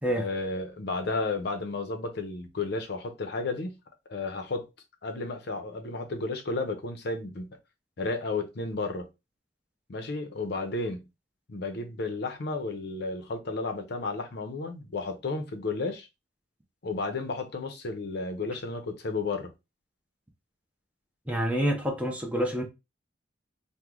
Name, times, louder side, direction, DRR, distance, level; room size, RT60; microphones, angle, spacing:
voice 1, 0.1-3.8 4.1-4.7 5.0-7.6 8.0-9.1 9.9-11.1 11.5-16.1 16.8-19.5, left 3 dB, 65° left, 0.6 m, -32 dB
voice 2, 21.3-22.6, equal, 10° right, 0.7 m, -27 dB
3.0 x 2.1 x 3.6 m
head